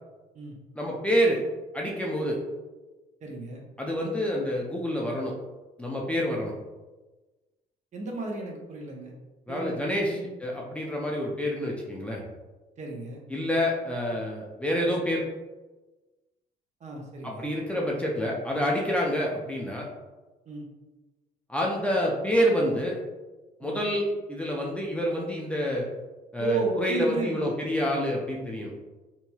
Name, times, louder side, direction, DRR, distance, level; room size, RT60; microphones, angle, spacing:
voice 1, 0.7-1.4 1.7-2.4 3.8-5.3 5.8-6.5 9.5-12.2 13.3-15.2 17.2-19.8 21.5-23.0 23.6-25.9 26.3-28.7, equal, 5° left, -3 dB, 0.4 m, -27 dB
voice 2, 3.2-3.6 7.9-9.1 9.5-10.3 12.8-13.2 16.8-17.5 20.5-20.6 23.6-23.8 26.4-27.6, right 3 dB, 45° right, 0 dB, 0.7 m, -33 dB
2.9 x 2.8 x 2.2 m, 1.2 s
cardioid pair, 110°, 17 cm